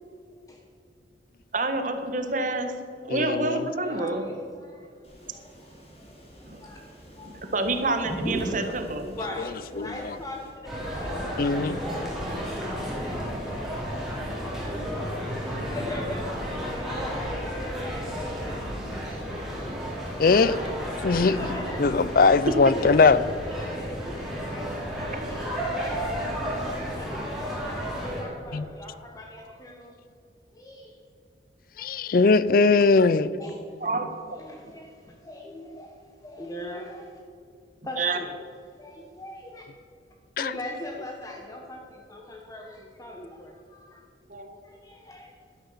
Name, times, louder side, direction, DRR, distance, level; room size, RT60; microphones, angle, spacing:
voice 1, 1.5-2.7 3.1-4.2 6.5-6.6 7.2-9.2 22.8-22.9 25.0-25.4 33.8-34.1 38.0-38.2 44.3-44.6, right 2 dB, 45° right, 6 dB, 1.4 m, -28 dB
voice 2, 3.1-3.7 9.8-10.2 11.4-11.8 20.2-20.6 21.0-23.2 28.5-28.6 31.8-33.4 40.4-40.5, left 4 dB, 50° left, 16 dB, 0.5 m, -20 dB
voice 3, 3.8-4.9 5.3-5.5 6.0-6.2 6.6-6.8 7.2-7.3 9.2-10.7 11.0-14.0 15.2-19.2 21.2-23.1 23.6-29.9 30.5-31.0 31.8-31.9 32.6-33.0 33.4-34.0 34.3-36.0 36.2-37.2 37.8-38.4 38.8-39.7 40.4-44.0 44.6-45.4, left 1 dB, 20° left, 0 dB, 1.1 m, -42 dB
sound 1, 5.0-10.5, right 1 dB, 35° left, 3.1 m, -38 dB
sound 2, 10.6-28.2, equal, ahead, 3.4 m, -32 dB
12.0 x 10.5 x 7.2 m, 2.3 s
head